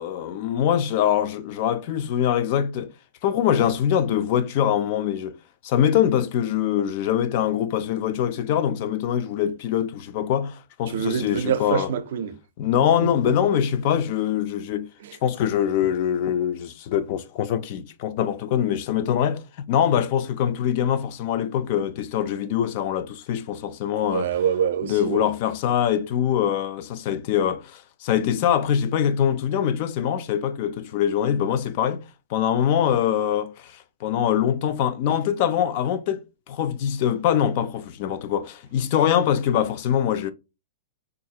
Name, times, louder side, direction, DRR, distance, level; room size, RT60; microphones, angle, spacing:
voice 1, 0.0-2.9 3.2-5.4 5.6-11.9 12.6-14.9 15.2-24.3 24.8-32.0 32.3-40.3, left 9 dB, 40° left, 0.3 m, -23 dB
voice 2, 10.9-12.4 13.0-13.3 15.0-15.2 24.0-25.3, right 8 dB, 60° right, 0.4 m, -26 dB
3.9 x 2.4 x 2.7 m
hypercardioid pair, 155°, 0 cm